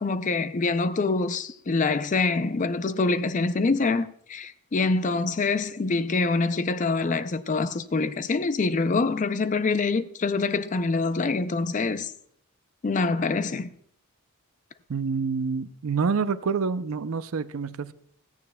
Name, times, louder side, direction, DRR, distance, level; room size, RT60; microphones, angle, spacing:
voice 1, 0.0-12.1 12.8-13.7, left 3 dB, 35° left, 0.4 m, -25 dB
voice 2, 14.9-17.9, right 5 dB, 70° right, 0.5 m, -27 dB
16.5 x 14.0 x 2.2 m
head